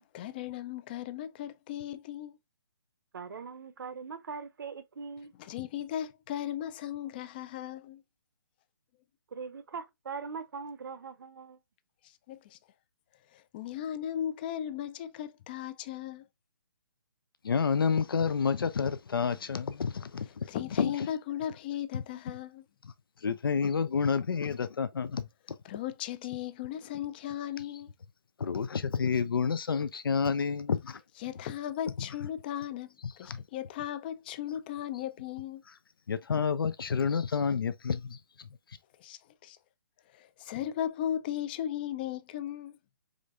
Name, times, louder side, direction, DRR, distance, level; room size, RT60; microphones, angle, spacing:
voice 1, 0.1-2.4 5.4-8.0 12.3-12.6 13.3-16.2 20.5-22.6 25.6-27.9 31.2-35.6 39.0-39.6 40.1-42.7, left 11 dB, 25° left, 0.3 m, -37 dB
voice 2, 3.1-5.3 9.3-11.6, right 5 dB, 65° right, 0.7 m, -41 dB
voice 3, 17.4-20.5 20.8-21.1 21.9-22.4 23.2-25.3 28.4-31.0 33.0-33.4 35.7-35.8 36.1-38.5, left 6 dB, 80° left, 0.5 m, -29 dB
5.0 x 3.2 x 2.4 m
hypercardioid pair, 150°, 12 cm